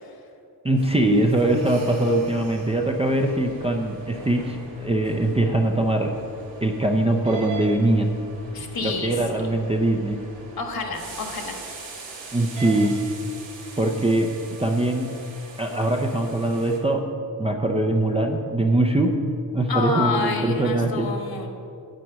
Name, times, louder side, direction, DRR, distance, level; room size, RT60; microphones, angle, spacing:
voice 1, 0.6-6.1 6.6-8.1 8.8-10.2 12.3-13.0 13.8-14.3 14.6-15.1 15.6-17.1 17.4-19.2 19.5-21.1, right 1 dB, 15° right, 1 dB, 0.5 m, -22 dB
sound 1, 0.8-16.8, right 3 dB, 90° right, 2.1 m, -41 dB
voice 2, 8.5-9.6 10.6-11.6 19.7-21.5, left 4 dB, 55° left, 3 dB, 1.5 m, -29 dB
9.1 x 8.4 x 6.2 m, 2.6 s
wide cardioid pair, 160°, 43 cm